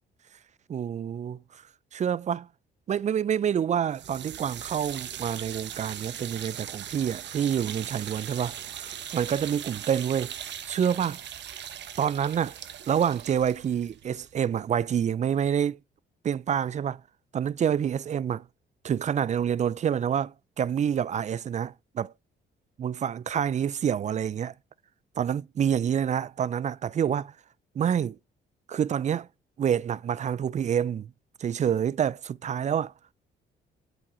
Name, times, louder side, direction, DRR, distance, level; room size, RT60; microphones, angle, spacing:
voice 1, 0.7-1.4 1.9-2.5 2.9-8.6 9.1-10.3 10.7-11.2 12.0-12.6 12.9-15.8 16.2-17.0 17.3-18.4 18.8-22.1 22.8-24.5 25.2-27.3 27.8-28.2 28.7-29.3 29.6-31.1 31.4-32.9, right 8 dB, 35° right, 0.4 m, -27 dB
sound 1, 3.9-15.0, right 9 dB, 60° right, 1.0 m, -40 dB
8.6 x 5.0 x 4.3 m
cardioid pair, 90°, 20 cm